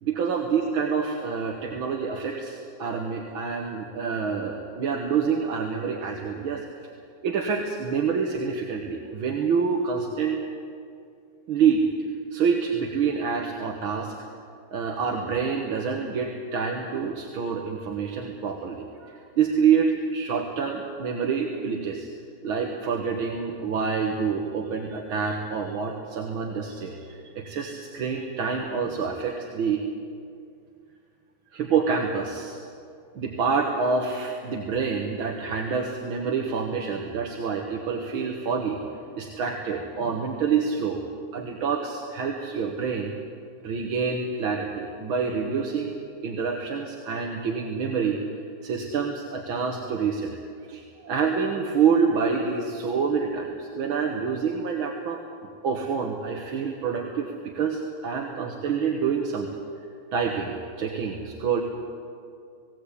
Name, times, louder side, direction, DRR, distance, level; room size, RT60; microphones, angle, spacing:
voice 1, 0.0-6.6 7.2-10.4 11.5-11.9 12.3-14.1 14.7-22.1 22.4-29.8 31.5-32.6 33.2-38.8 39.2-41.0 41.3-43.1 43.6-48.2 48.6-50.3 50.7-55.2 55.6-59.5 60.1-61.6, right 6 dB, 85° right, 1 dB, 2.2 m, -27 dB
19.0 x 18.0 x 8.4 m, 2.4 s
omnidirectional pair, 2.2 m